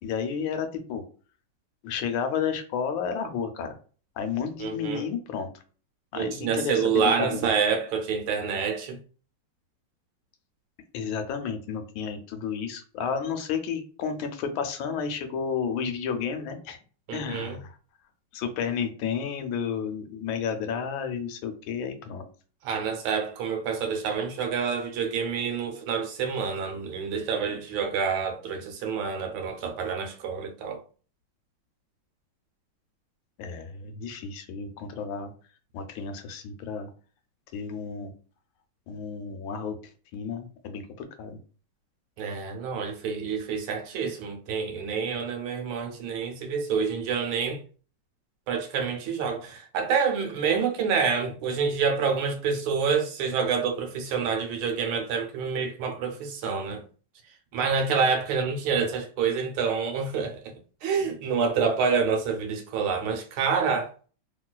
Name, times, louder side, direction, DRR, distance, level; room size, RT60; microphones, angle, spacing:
voice 1, 0.0-1.0 1.8-3.7 4.2-5.5 6.1-7.5 10.9-16.8 17.1-17.8 18.3-22.2 33.4-35.3 35.7-36.9 37.5-38.1 38.9-39.8 40.1-41.4, left 6 dB, 75° left, 1.3 m, -31 dB
voice 2, 4.6-5.1 6.1-9.0 17.1-17.6 22.6-30.8 42.2-47.6 48.5-56.8 57.5-60.5 60.8-64.1, right 6 dB, 80° right, 1.5 m, -27 dB
3.0 x 2.9 x 2.2 m
omnidirectional pair, 2.3 m